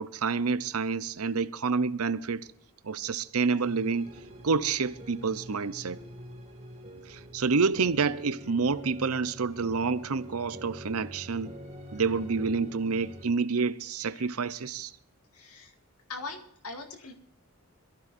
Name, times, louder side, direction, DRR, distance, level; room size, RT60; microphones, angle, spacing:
voice 1, 0.0-2.5 2.8-4.1 4.4-6.0 7.1-11.5 11.9-14.9, right 4 dB, 75° right, 0.7 m, -28 dB
sound 1, 3.6-13.2, equal, 30° right, 2.3 m, -45 dB
voice 2, 15.3-15.7 16.1-17.1, left 3 dB, 80° left, 2.1 m, -41 dB
22.0 x 14.5 x 2.6 m
head